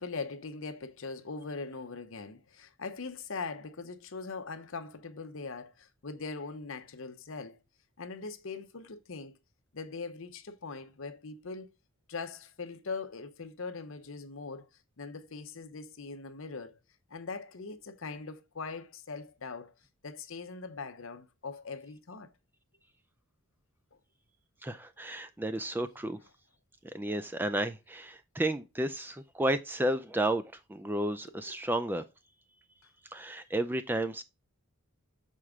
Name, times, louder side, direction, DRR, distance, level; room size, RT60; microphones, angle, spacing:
voice 1, 0.0-7.6 8.0-9.3 9.7-11.7 12.1-14.7 15.0-16.8 17.1-19.7 20.0-22.3 23.9-24.0, left 4 dB, 60° left, 0.8 m, -41 dB
voice 2, 24.6-26.2 26.9-30.4 30.7-32.0 33.1-34.2, right 1 dB, 10° right, 0.3 m, -32 dB
6.4 x 4.4 x 3.6 m
head